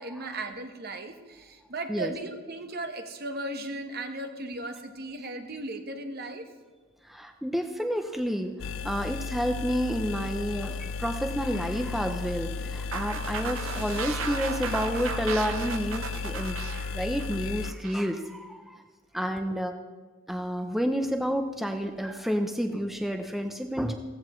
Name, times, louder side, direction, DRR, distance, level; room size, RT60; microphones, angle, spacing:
voice 1, 0.0-6.4, right 2 dB, 50° right, 6 dB, 1.2 m, -36 dB
voice 2, 7.0-8.5 8.8-18.8 19.1-19.7 20.3-23.9, equal, ahead, 5 dB, 0.6 m, -30 dB
sound 1, 8.6-17.7, left 4 dB, 75° left, 0.4 m, -34 dB
sound 2, 10.9-14.3, right 2 dB, 30° right, 2.3 m, -50 dB
sound 3, 12.9-18.1, right 6 dB, 80° right, 0.7 m, -36 dB
16.0 x 15.0 x 3.1 m, 1.4 s
head